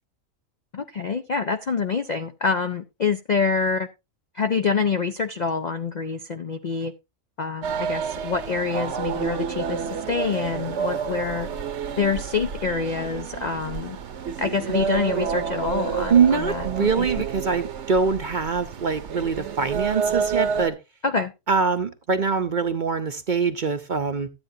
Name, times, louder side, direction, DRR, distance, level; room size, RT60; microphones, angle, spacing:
voice 1, 0.7-3.9 4.3-6.9 7.4-11.5 12.0-14.0 14.4-17.1 21.0-21.3, left 5 dB, 55° left, 8 dB, 0.5 m, -26 dB
sound 1, 7.6-20.7, right 6 dB, 60° right, 1.1 m, -29 dB
voice 2, 16.1-20.8 21.5-24.3, right 5 dB, 45° right, 9 dB, 0.7 m, -23 dB
12.5 x 8.7 x 2.7 m, 0.24 s
omnidirectional pair, 1.4 m